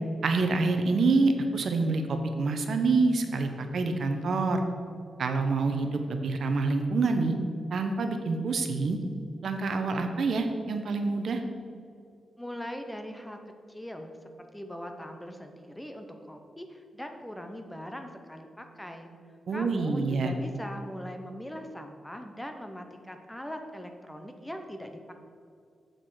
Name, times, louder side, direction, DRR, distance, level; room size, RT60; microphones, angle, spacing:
voice 1, 0.2-4.6 5.2-7.4 7.7-9.0 9.4-11.4 19.5-20.3, right 3 dB, 60° right, 6 dB, 0.8 m, -26 dB
voice 2, 12.4-13.4 13.7-14.1 14.4-19.1 19.5-25.1, equal, 5° left, 5 dB, 0.6 m, -41 dB
7.7 x 6.6 x 4.8 m, 2.4 s
wide cardioid pair, 140°, 0 cm